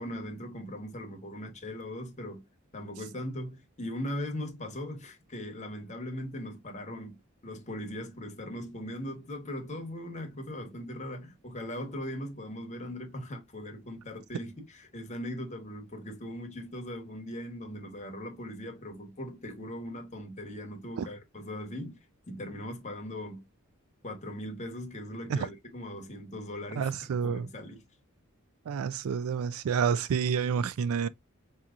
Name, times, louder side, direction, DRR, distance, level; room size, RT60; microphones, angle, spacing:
voice 1, 0.0-2.4 2.7-7.2 7.4-22.0 22.3-23.4 24.0-27.8, left 1 dB, 35° left, 1.1 m, -39 dB
voice 2, 26.8-27.5 28.7-31.1, right 6 dB, 75° right, 0.3 m, -29 dB
4.8 x 2.9 x 2.4 m
head